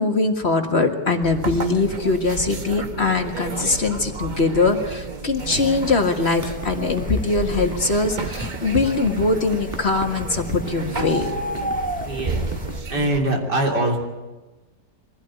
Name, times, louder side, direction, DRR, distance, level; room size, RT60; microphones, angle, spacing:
voice 1, 0.0-11.3, left 3 dB, 40° left, 5 dB, 1.8 m, -22 dB
sound 1, 1.2-13.2, right 4 dB, 30° right, 1.1 m, -32 dB
sound 2, 5.4-12.8, equal, 10° left, 0.5 m, -35 dB
sound 3, 5.6-12.8, equal, 10° right, 1.8 m, -39 dB
voice 2, 12.0-12.4 12.9-14.0, right 1 dB, 80° right, 0 dB, 4.0 m, -22 dB
23.5 x 16.0 x 9.1 m, 1.2 s
omnidirectional pair, 1.8 m